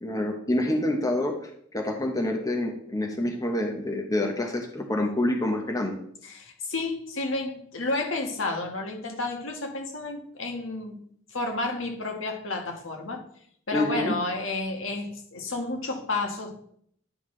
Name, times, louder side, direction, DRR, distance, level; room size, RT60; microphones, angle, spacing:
voice 1, 0.0-6.0 13.7-14.1, left 1 dB, 20° left, 2 dB, 1.0 m, -27 dB
voice 2, 6.2-11.0 11.3-13.2 13.7-16.6, left 2 dB, 75° left, 2 dB, 1.5 m, -31 dB
10.5 x 5.7 x 3.3 m, 0.65 s
head